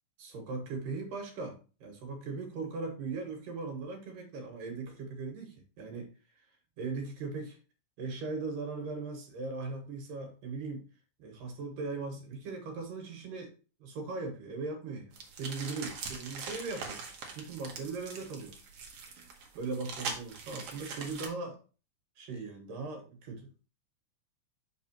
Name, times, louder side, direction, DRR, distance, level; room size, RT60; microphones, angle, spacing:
voice 1, 0.2-6.1 6.8-7.6 8.0-10.9 11.2-13.5 13.8-17.1 17.4-18.6 19.5-21.6 22.2-23.5, right 3 dB, 75° right, 3 dB, 3.1 m, -39 dB
sound 1, 15.1-21.3, right 5 dB, 60° right, 1.7 m, -42 dB
6.4 x 5.9 x 2.9 m, 0.35 s
omnidirectional pair, 3.9 m